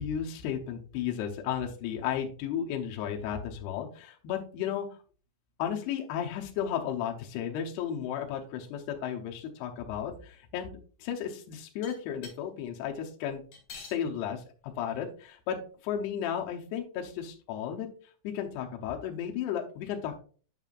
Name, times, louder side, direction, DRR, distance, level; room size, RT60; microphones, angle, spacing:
voice 1, 0.0-4.9 5.6-13.4 13.8-17.9 18.2-20.2, left 9 dB, 75° left, 1 dB, 2.8 m, -34 dB
sound 1, 11.8-12.4 13.5-14.0 14.9-15.0 15.2-15.3 16.2-16.3, left 4 dB, 50° left, 3.0 m, -45 dB
9.0 x 5.5 x 2.4 m, 0.40 s
omnidirectional pair, 4.9 m